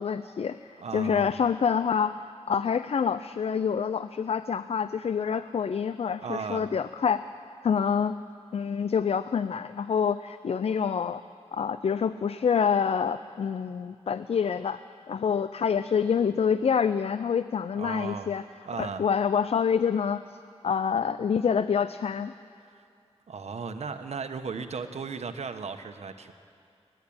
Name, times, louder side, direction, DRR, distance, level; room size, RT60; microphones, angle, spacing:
voice 1, 0.0-7.2 7.6-8.2 8.5-11.2 11.5-14.8 15.1-18.4 18.8-20.4 20.6-22.3, left 7 dB, 65° left, 13 dB, 0.5 m, -27 dB
voice 2, 0.8-1.3 6.2-6.7 17.7-18.3 18.6-19.0 23.3-26.3, right 5 dB, 75° right, 7 dB, 1.2 m, -36 dB
28.0 x 11.5 x 8.8 m, 2.4 s
wide cardioid pair, 120°, 11 cm